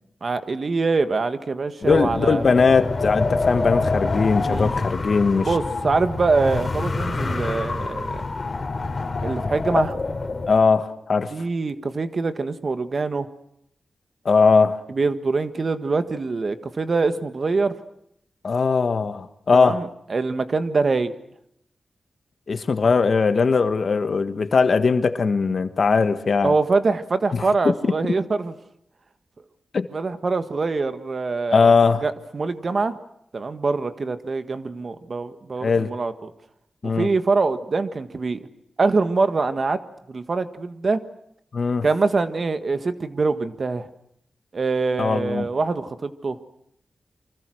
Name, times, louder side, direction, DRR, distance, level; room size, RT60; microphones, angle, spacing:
voice 1, 0.2-2.4 4.4-4.7 5.4-8.3 9.2-9.9 11.3-13.3 14.9-17.8 19.5-21.2 26.4-28.5 29.9-31.7 32.0-33.0 33.3-36.3 36.8-38.5 38.8-39.8 40.1-41.0 41.8-43.9 44.5-46.4, right 3 dB, 50° right, 10 dB, 1.6 m, -24 dB
voice 2, 1.8-5.5 9.7-9.8 10.5-11.3 14.2-14.8 18.4-19.8 22.5-26.5 27.3-27.7 29.7-29.9 31.5-32.0 35.6-35.9 36.8-37.1 41.5-41.8 45.0-45.5, left 4 dB, 55° left, 9 dB, 1.5 m, -20 dB
Wind, 1.8-10.5, left 3 dB, 40° left, 3.4 m, -26 dB
28.0 x 24.5 x 6.4 m, 0.74 s
wide cardioid pair, 90°, 0 cm